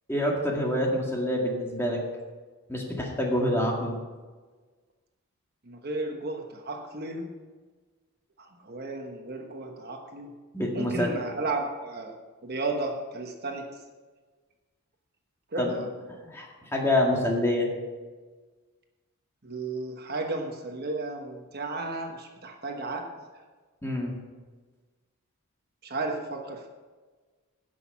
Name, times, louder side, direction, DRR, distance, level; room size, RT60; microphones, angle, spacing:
voice 1, 0.1-2.0 2.7-4.0 10.5-11.1 15.6-15.8 16.2-16.5 16.7-17.7 23.8-24.1, left 1 dB, 10° left, -1 dB, 1.9 m, -26 dB
voice 2, 5.6-7.3 8.4-10.3 10.7-12.2 12.4-13.8 15.5-15.9 19.4-23.1 25.8-26.7, right 2 dB, 45° right, 3 dB, 1.1 m, -33 dB
16.0 x 6.3 x 5.8 m, 1.4 s
head